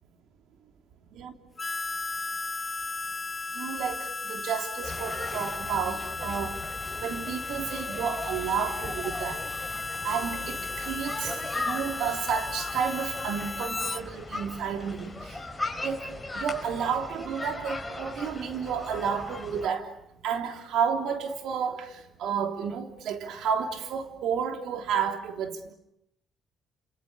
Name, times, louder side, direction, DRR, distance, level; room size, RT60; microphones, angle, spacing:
Harmonica, 1.6-14.0, left 3 dB, 25° left, 1.0 m, -35 dB
voice 1, 3.5-6.6 7.0-9.4 10.0-15.4 15.8-19.9 20.2-25.7, right 7 dB, 80° right, 3.2 m, -31 dB
sound 1, 4.8-19.7, left 2 dB, 10° left, 5.5 m, -38 dB
29.0 x 28.5 x 6.9 m
cardioid pair, 90°, 0 cm